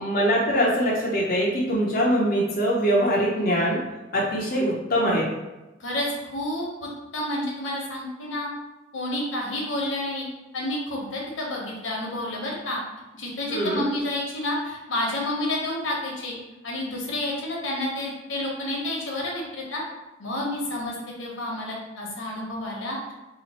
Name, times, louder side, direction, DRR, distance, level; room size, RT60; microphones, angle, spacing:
voice 1, 0.0-3.8 4.1-5.3 13.5-13.8, equal, 50° left, -4 dB, 0.6 m, -23 dB
voice 2, 5.8-8.5 8.9-10.3 10.5-12.8 13.1-16.3 16.6-19.8 20.2-23.1, left 1 dB, 85° left, -2 dB, 0.9 m, -30 dB
2.8 x 2.4 x 4.1 m, 1.1 s
head